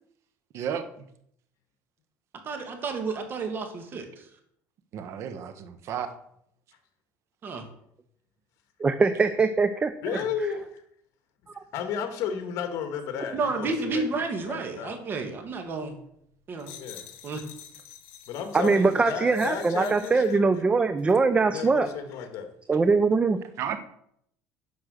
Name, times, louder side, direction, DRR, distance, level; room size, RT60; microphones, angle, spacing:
voice 1, 0.5-1.1 4.9-6.1 23.6-23.8, right 8 dB, 55° right, 10 dB, 1.3 m, -33 dB
voice 2, 2.5-4.1 7.4-7.7 10.1-10.2 13.3-16.0 16.5-16.7 17.2-17.4, right 3 dB, 40° right, 5 dB, 2.2 m, -31 dB
voice 3, 8.8-10.2 18.5-21.9 22.7-23.4, right 4 dB, 20° right, 10 dB, 0.6 m, -22 dB
voice 4, 10.0-10.8 11.7-15.0 16.7-17.1 18.3-20.4 21.5-22.5, left 7 dB, 60° left, 7 dB, 1.9 m, -33 dB
sound 1, 16.6-20.3 21.0-21.2, left 10 dB, 80° left, 1.8 m, -48 dB
10.5 x 5.5 x 6.5 m, 0.72 s
cardioid pair, 120°, 6 cm